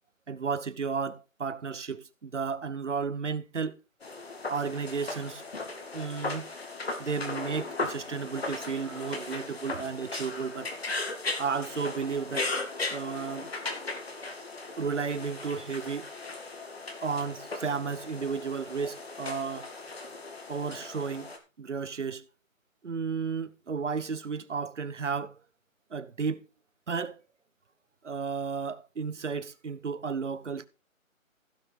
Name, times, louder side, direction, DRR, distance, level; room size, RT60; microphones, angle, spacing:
voice 1, 0.3-3.8 4.5-5.4 5.9-6.5 7.0-10.7 11.4-12.5 12.9-13.5 14.8-16.1 17.0-19.7 20.5-22.3 22.8-25.4 25.9-26.4 26.9-27.2 28.0-30.7, right 5 dB, 60° right, 1.1 m, -33 dB
sound 1, 4.0-21.4, left 3 dB, 45° left, 2.3 m, -37 dB
16.0 x 5.4 x 5.2 m
hypercardioid pair, 175°, 41 cm